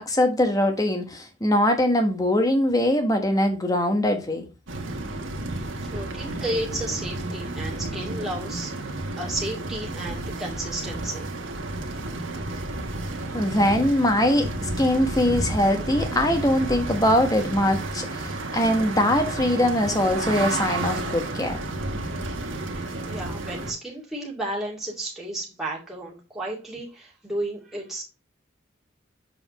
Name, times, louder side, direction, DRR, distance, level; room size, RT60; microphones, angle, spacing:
voice 1, 0.0-4.4 13.3-21.6, left 1 dB, 20° left, 1.3 m, -22 dB
sound 1, 4.7-23.7, right 2 dB, 80° right, 1.3 m, -31 dB
voice 2, 5.9-11.2 23.1-28.0, right 1 dB, ahead, 2.3 m, -33 dB
6.9 x 5.3 x 3.0 m
head